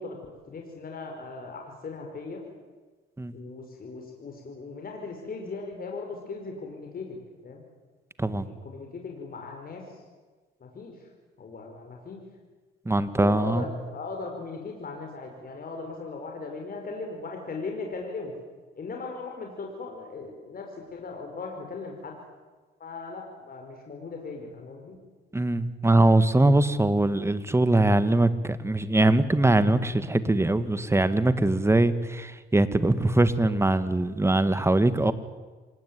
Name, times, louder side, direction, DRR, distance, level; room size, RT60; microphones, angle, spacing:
voice 1, 0.0-2.4 3.3-7.6 8.2-10.0 10.6-11.1 11.4-12.2 13.1-18.3 18.8-22.2 22.8-25.0, left 3 dB, 45° left, 1 dB, 5.2 m, -38 dB
voice 2, 12.9-13.6 25.3-35.1, right 2 dB, 15° right, 12 dB, 1.9 m, -22 dB
26.5 x 18.5 x 9.7 m, 1.3 s
cardioid pair, 90°, 20 cm